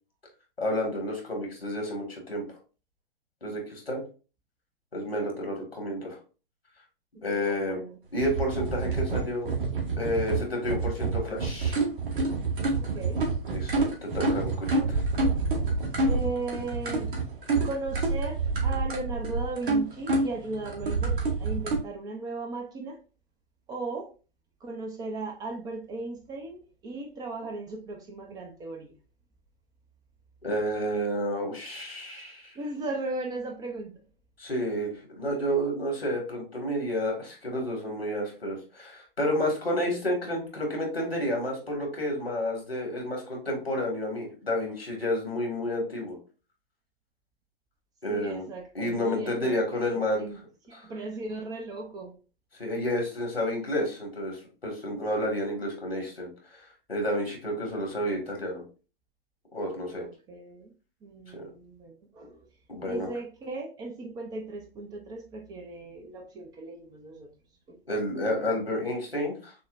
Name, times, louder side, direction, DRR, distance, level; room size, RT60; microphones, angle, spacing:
voice 1, 0.6-2.4 3.4-4.0 4.9-6.2 7.2-7.8 8.1-9.5 10.0-11.8 13.5-15.0 30.4-32.5 34.4-46.2 48.0-48.5 48.8-50.3 50.7-50.8 52.5-56.3 56.9-58.6 59.5-60.0 61.3-61.5 62.7-63.1 67.9-69.5, equal, 90° left, 1.8 m, -30 dB
voice 2, 7.3-8.0 12.7-13.2 16.1-17.1 17.6-23.0 23.7-24.1 24.6-28.9 32.5-33.9 48.1-50.4 50.7-52.1 57.7-57.9 60.0-60.7 61.0-62.5 62.9-67.3 67.7-67.8, right 3 dB, 15° right, 0.4 m, -37 dB
sound 1, 8.2-21.8, right 3 dB, 60° right, 1.6 m, -28 dB
6.3 x 2.1 x 2.5 m
figure-of-eight pair, 115°, 29 cm